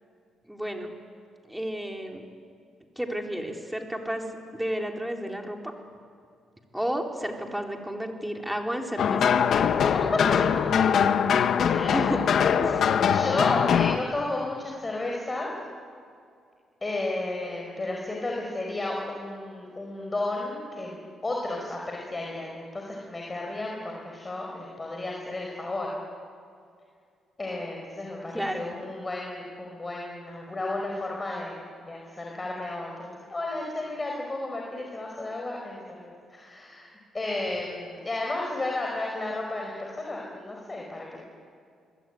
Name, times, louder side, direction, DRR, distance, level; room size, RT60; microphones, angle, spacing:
voice 1, 0.5-0.9 1.5-2.2 3.0-4.2 4.5-5.7 6.7-9.4 11.6-12.2 12.6-12.8 28.3-28.8, equal, 5° right, 2 dB, 3.9 m, -32 dB
sound 1, 9.0-14.0, left 7 dB, 65° left, 1.3 m, -22 dB
voice 2, 9.7-11.1 11.6-12.1 12.7-12.8 13.1-15.5 16.8-21.0 21.2-25.9 27.4-36.9 37.1-41.2, left 2 dB, 25° left, -1 dB, 5.1 m, -33 dB
27.0 x 21.5 x 9.4 m, 2.3 s
cardioid pair, 90°, 0 cm